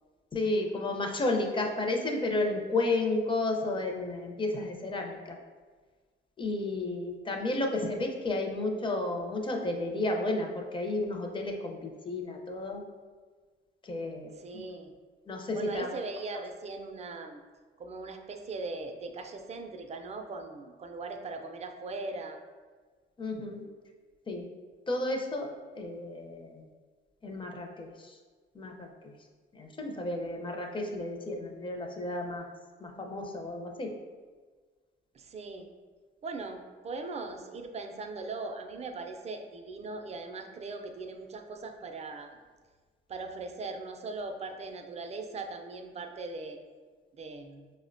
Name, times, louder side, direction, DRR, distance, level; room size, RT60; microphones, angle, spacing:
voice 1, 0.3-5.4 6.4-12.8 13.8-14.6 15.3-15.9 23.2-23.6 24.3-24.4 24.9-25.5 25.7-26.6 27.2-28.2 28.5-28.9 29.5-32.5 32.8-33.9, left 2 dB, 25° left, 2 dB, 0.5 m, -32 dB
voice 2, 14.3-14.9 15.5-17.4 17.8-22.4 35.1-35.7 36.2-42.4 43.1-46.6 47.2-47.7, right 3 dB, 35° right, 5 dB, 0.4 m, -40 dB
5.0 x 2.1 x 2.5 m, 1.5 s
cardioid pair, 90°, 20 cm